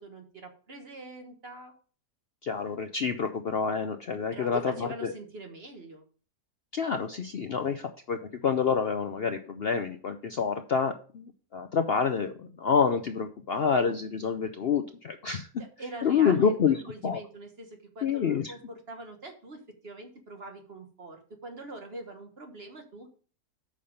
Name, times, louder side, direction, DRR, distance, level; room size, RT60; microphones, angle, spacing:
voice 1, 0.0-1.7 4.3-6.0 15.6-23.1, right 1 dB, 40° right, 4 dB, 1.4 m, -43 dB
voice 2, 2.4-5.1 6.7-15.5 16.0-16.8 17.0-17.2 18.0-18.5, left 6 dB, 65° left, 7 dB, 0.6 m, -28 dB
8.6 x 5.6 x 5.1 m, 0.41 s
omnidirectional pair, 1.7 m